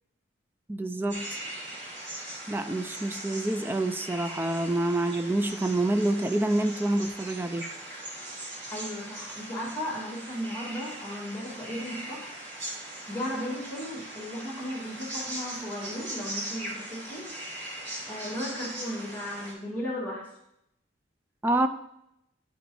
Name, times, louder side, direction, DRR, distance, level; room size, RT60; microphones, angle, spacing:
voice 1, 0.7-1.3 2.5-7.6 21.4-21.7, right 1 dB, 10° right, 9 dB, 0.3 m, -27 dB
sound 1, 1.1-19.5, right 1 dB, 70° right, 2.5 m, -40 dB
voice 2, 8.7-12.3 13.1-17.3 18.1-20.3, equal, 10° left, -8 dB, 2.4 m, -35 dB
11.0 x 5.1 x 3.1 m, 0.80 s
head